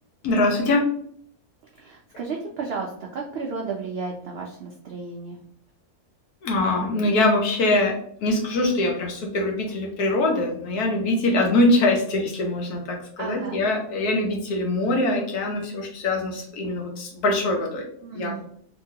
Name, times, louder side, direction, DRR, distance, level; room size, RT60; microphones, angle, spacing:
voice 1, 0.2-0.8 6.4-8.0 8.2-17.9 18.1-18.4, left 2 dB, 85° left, 1 dB, 1.3 m, -23 dB
voice 2, 1.7-5.4 13.2-13.6 16.6-16.7 18.0-18.4, right 4 dB, 85° right, 0 dB, 0.5 m, -33 dB
2.9 x 2.9 x 2.7 m, 0.63 s
omnidirectional pair, 1.6 m